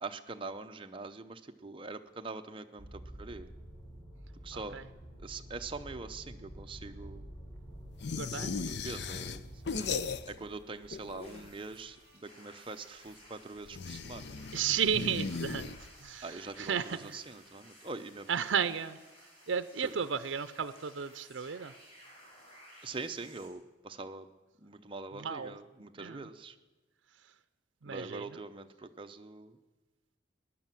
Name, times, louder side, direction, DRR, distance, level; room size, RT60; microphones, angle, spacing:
voice 1, 0.0-3.5 4.4-4.8 5.2-7.3 8.3-14.4 16.2-18.3 19.8-19.9 22.8-24.3 24.6-26.6 27.9-29.6, right 3 dB, 25° right, 7 dB, 0.7 m, -44 dB
sound 1, 2.8-10.3, equal, 15° left, 3.3 m, -48 dB
voice 2, 4.5-4.8 8.1-8.5 14.5-15.7 16.0-16.2 16.6-17.2 18.3-19.0 19.5-21.7 25.2-25.5 26.0-26.2 27.8-28.2, right 7 dB, 80° right, 11 dB, 0.6 m, -33 dB
sound 2, 8.0-10.6 10.8-11.7 13.7-16.2, left 4 dB, 60° left, 0.6 m, -38 dB
sound 3, 11.2-23.5, equal, 30° left, 4.6 m, -57 dB
16.5 x 11.0 x 7.6 m, 1.2 s
head